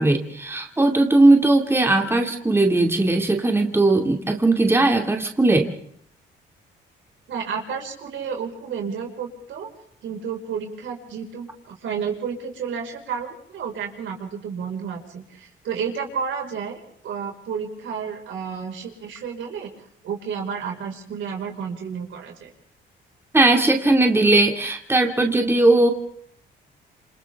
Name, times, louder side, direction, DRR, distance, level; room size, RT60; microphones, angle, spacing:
voice 1, 0.0-5.7 23.3-25.9, right 2 dB, 10° right, 3 dB, 2.4 m, -18 dB
voice 2, 7.3-9.7 10.0-22.5, right 6 dB, 75° right, 2 dB, 5.2 m, -31 dB
27.5 x 27.5 x 3.6 m, 0.67 s
cardioid pair, 90°, 20 cm